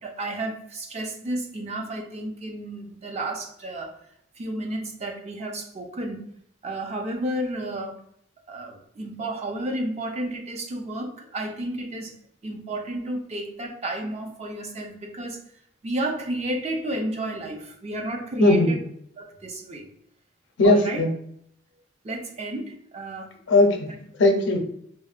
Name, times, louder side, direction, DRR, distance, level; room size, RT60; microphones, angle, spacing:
voice 1, 0.0-4.0 4.4-6.3 6.6-8.0 8.5-12.1 12.4-15.4 15.8-18.8 19.2-19.9 20.6-21.0 22.0-23.4, right 1 dB, 35° right, 3 dB, 0.4 m, -32 dB
voice 2, 18.4-18.7 20.6-21.1 23.5-23.9 24.2-24.6, left 2 dB, 80° left, 3 dB, 0.6 m, -18 dB
3.8 x 2.1 x 2.4 m, 0.69 s
head